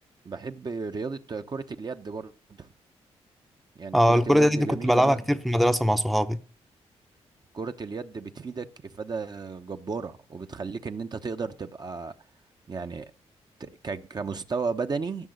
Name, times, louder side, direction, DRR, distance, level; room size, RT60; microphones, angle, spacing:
voice 1, 0.2-2.3 2.6-2.7 3.8-5.2 7.5-12.1 12.7-13.1 13.6-15.3, right 4 dB, 35° right, 0.9 m, -34 dB
voice 2, 3.9-6.4, equal, ahead, 0.7 m, -21 dB
14.5 x 6.1 x 8.0 m
cardioid pair, 80°, 11 cm